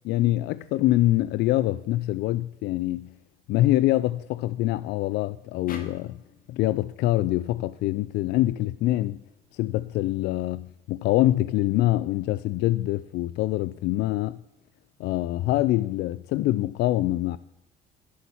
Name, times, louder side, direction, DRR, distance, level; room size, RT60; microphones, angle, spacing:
voice 1, 0.0-3.1 3.5-6.2 6.5-9.2 9.5-14.4 15.0-17.4, left 15 dB, 80° left, 0.4 m, -25 dB
sound 1, 5.7-8.9, left 5 dB, 55° left, 2.1 m, -47 dB
11.5 x 8.5 x 7.1 m
cardioid pair, 110°, 17 cm